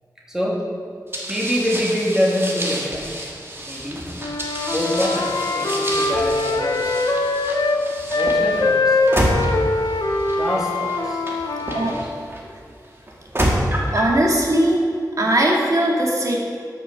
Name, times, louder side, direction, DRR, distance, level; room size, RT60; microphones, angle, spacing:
voice 1, 0.3-0.6 1.3-3.1 3.7-4.1 4.7-7.0 8.1-9.0 10.4-11.2 11.6-12.1 12.4-12.5, equal, 10° right, -4 dB, 2.7 m, -25 dB
sound 1, 1.1-12.4 13.1-14.2, right 1 dB, 35° right, 1.9 m, -28 dB
Wind instrument woodwind instrument, 4.2-7.8 8.1-12.0, left 3 dB, 70° left, 0.8 m, -22 dB
voice 2, 13.9-14.8 15.2-16.4, right 1 dB, 50° right, -2 dB, 2.2 m, -19 dB
13.0 x 6.6 x 5.9 m, 2.3 s
wide cardioid pair, 80°, 7 cm